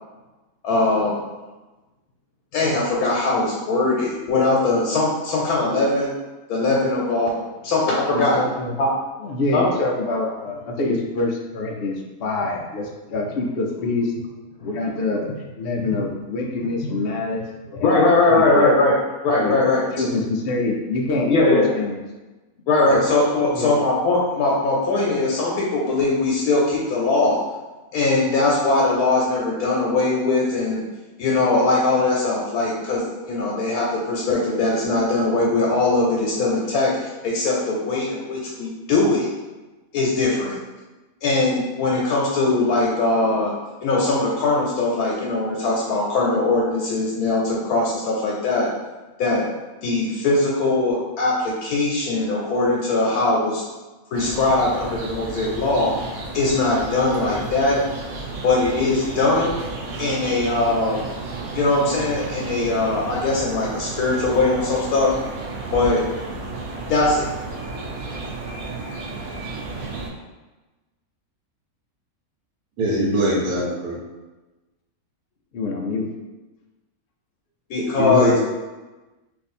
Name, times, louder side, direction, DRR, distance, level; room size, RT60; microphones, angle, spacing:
voice 1, 0.6-1.2 2.5-6.1 6.5-8.4 8.8-8.9 9.5-9.7 14.6-15.0 15.8-16.0 16.6-16.7 17.8-19.0 19.2-20.1 21.3-21.7 22.7-27.4 27.9-30.8 31.2-39.3 39.9-40.6 41.2-43.5 43.8-48.7 49.2-49.5 49.8-53.6 54.1-55.9 56.3-57.8 58.4-59.5 60.0-61.0 61.5-65.1 65.7-66.0 66.9-67.2 77.7-78.4, left 2 dB, 85° left, -3 dB, 1.1 m, -21 dB
voice 2, 8.1-8.7 9.2-14.1 14.6-18.7 19.4-19.6 19.9-21.9 22.9-23.0 23.5-23.7 75.5-76.1, left 2 dB, 70° left, 0 dB, 0.5 m, -25 dB
sound 1, 54.1-70.1, right 3 dB, 55° right, 0.6 m, -32 dB
voice 3, 72.8-74.0 78.0-78.4, equal, 85° right, -5 dB, 1.3 m, -21 dB
2.7 x 2.5 x 4.1 m, 1.1 s
omnidirectional pair, 1.5 m